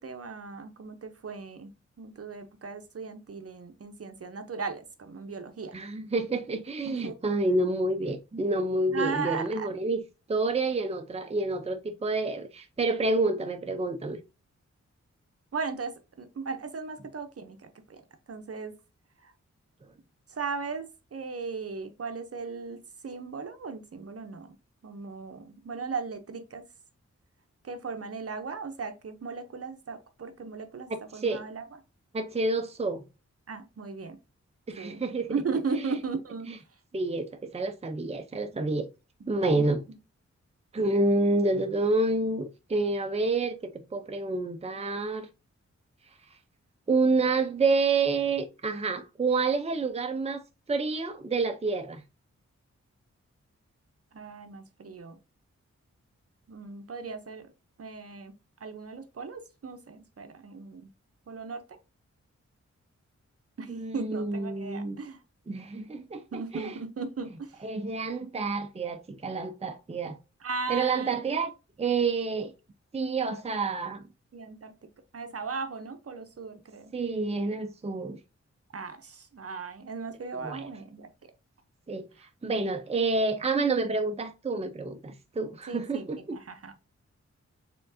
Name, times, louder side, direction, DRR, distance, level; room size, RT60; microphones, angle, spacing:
voice 1, 0.0-1.7 2.0-5.7 6.9-7.3 8.9-9.7 15.5-18.0 18.3-18.7 19.2-19.3 20.3-24.6 24.8-26.7 27.6-31.6 33.5-34.2 34.8-35.0 35.3-36.5 39.3-40.0 54.1-55.2 56.5-57.5 57.8-58.3 58.6-60.9 61.3-61.8 63.6-65.2 66.3-67.6 70.4-71.1 73.3-73.4 74.3-74.7 75.1-76.9 78.7-81.1 85.7-86.7, right 4 dB, 55° right, 0.8 m, -37 dB
voice 2, 5.7-10.0 10.3-14.2 30.9-31.5 32.1-33.0 34.7-35.3 35.7-35.9 36.5-36.6 36.9-38.9 39.3-39.9 40.7-43.6 43.9-45.3 46.9-50.4 50.7-52.0 63.7-65.0 65.5-66.7 67.6-70.2 70.7-71.5 71.8-72.5 72.9-74.0 76.9-78.2 80.3-80.6 81.9-86.4, right 3 dB, 20° right, 0.6 m, -28 dB
4.4 x 3.7 x 2.7 m
cardioid pair, 65°, 29 cm